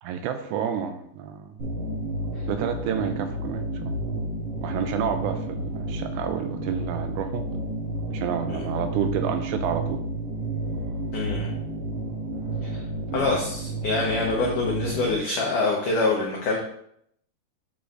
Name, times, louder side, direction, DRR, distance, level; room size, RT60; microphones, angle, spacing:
voice 1, 0.0-1.6 2.5-4.0 4.6-7.5 8.1-10.0 13.1-13.4, right 8 dB, 85° right, 7 dB, 2.6 m, -29 dB
sound 1, 1.6-15.2, right 1 dB, 45° right, 2.3 m, -31 dB
voice 2, 11.1-11.5 12.6-12.8 13.1-16.6, left 3 dB, 90° left, -2 dB, 1.8 m, -25 dB
9.3 x 5.9 x 2.6 m, 0.70 s
omnidirectional pair, 5.2 m